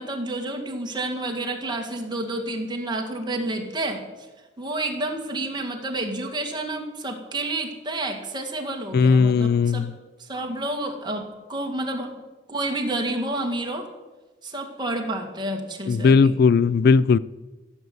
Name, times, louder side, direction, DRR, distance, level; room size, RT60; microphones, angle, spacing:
voice 1, 0.0-4.1 4.6-9.9 10.2-12.1 12.5-13.9 14.4-16.3, right 2 dB, 25° right, 3 dB, 2.1 m, -29 dB
voice 2, 8.9-9.9 15.9-17.2, left 5 dB, 55° left, 19 dB, 0.3 m, -17 dB
16.0 x 8.1 x 7.9 m, 1.2 s
head